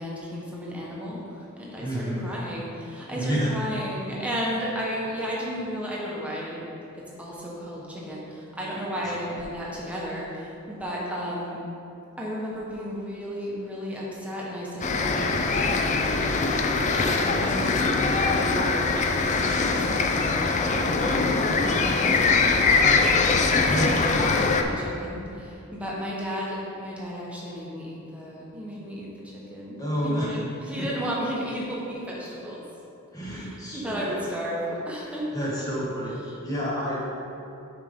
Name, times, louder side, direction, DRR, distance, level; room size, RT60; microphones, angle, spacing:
voice 1, 0.0-6.7 6.9-11.6 12.2-18.8 19.2-23.1 23.6-32.6 33.2-35.7 36.0-36.4, equal, 5° right, -5 dB, 1.1 m, -34 dB
voice 2, 1.8-2.3 3.1-3.5 9.0-9.1 23.6-24.0 29.8-30.4 30.8-30.9 33.1-34.1 35.3-37.3, equal, 15° left, -6 dB, 1.3 m, -29 dB
sound 1, 14.8-24.6, left 4 dB, 35° left, 0.4 m, -22 dB
7.2 x 5.0 x 3.6 m, 2.7 s
head